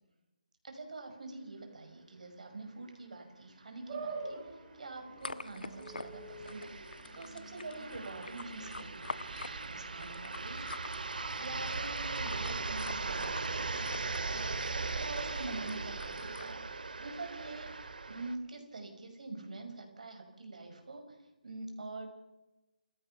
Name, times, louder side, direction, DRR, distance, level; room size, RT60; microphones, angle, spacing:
voice 1, 0.6-6.7 7.1-9.3 9.6-10.6 11.3-14.5 14.9-16.6 17.0-17.7 18.1-22.1, right 3 dB, 55° right, 5 dB, 5.8 m, -45 dB
sound 1, 3.9-10.3, right 3 dB, 20° right, 5.4 m, -47 dB
sound 2, 4.3-4.4 4.7-4.8 5.5-18.4, right 3 dB, 75° right, 2.4 m, -39 dB
sound 3, 5.2-16.5, left 3 dB, 85° left, 1.3 m, -48 dB
29.0 x 16.5 x 5.8 m, 1.0 s
hypercardioid pair, 180°, 5 cm